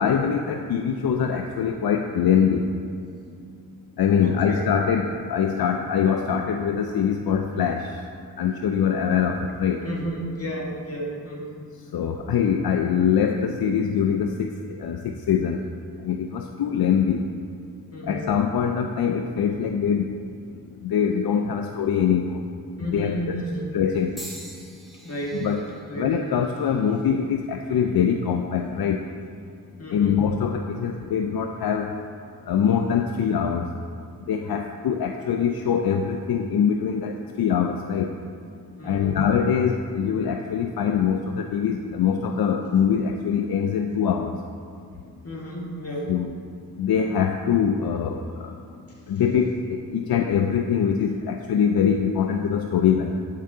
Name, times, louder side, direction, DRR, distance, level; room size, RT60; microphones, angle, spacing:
voice 1, 0.0-2.7 4.0-8.0 8.4-9.9 11.9-15.6 16.0-17.3 18.1-20.2 20.5-22.4 22.8-23.4 23.7-24.2 25.3-25.6 25.9-29.1 29.9-31.9 32.4-33.7 34.3-38.2 38.8-44.4 46.1-46.3 46.7-48.5 49.1-53.1, left 7 dB, 75° left, 4 dB, 0.5 m, -23 dB
voice 2, 4.2-4.6 9.8-11.6 17.9-18.3 22.8-23.7 25.0-25.5 25.9-26.1 29.8-30.2 38.8-39.2 45.2-46.1, right 1 dB, 40° left, -3 dB, 2.2 m, -32 dB
sound 1, 24.2-28.3 29.0-29.4 30.4-30.6, equal, ahead, 1.6 m, -46 dB
13.0 x 4.6 x 3.8 m, 2.4 s
cardioid pair, 65°, 37 cm